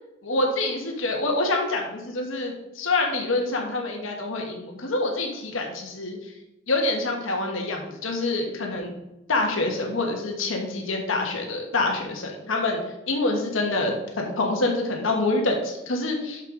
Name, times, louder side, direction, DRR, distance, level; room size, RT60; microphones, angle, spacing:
voice 1, 0.2-6.2 6.7-8.9 9.3-12.8 13.1-16.4, left 2 dB, 90° left, 1 dB, 1.4 m, -26 dB
6.5 x 6.1 x 3.8 m, 0.94 s
head